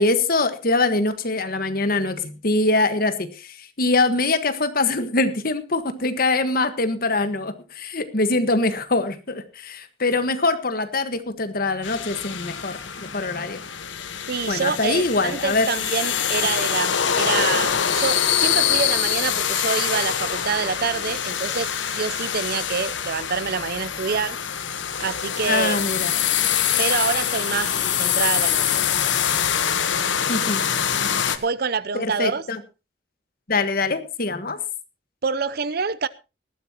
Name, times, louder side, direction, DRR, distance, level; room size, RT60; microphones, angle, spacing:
voice 1, 0.0-13.6 14.5-15.7 25.5-26.1 30.3-30.6 31.9-32.6 33.5-34.6, left 2 dB, 50° left, 1.5 m, -23 dB
sound 1, 11.8-31.4, left 8 dB, 85° left, 1.2 m, -24 dB
voice 2, 14.3-24.4 25.0-25.8 26.8-27.7 28.0-28.8 31.1-32.4 35.2-36.1, right 5 dB, 55° right, 0.6 m, -26 dB
19.5 x 13.5 x 2.9 m
head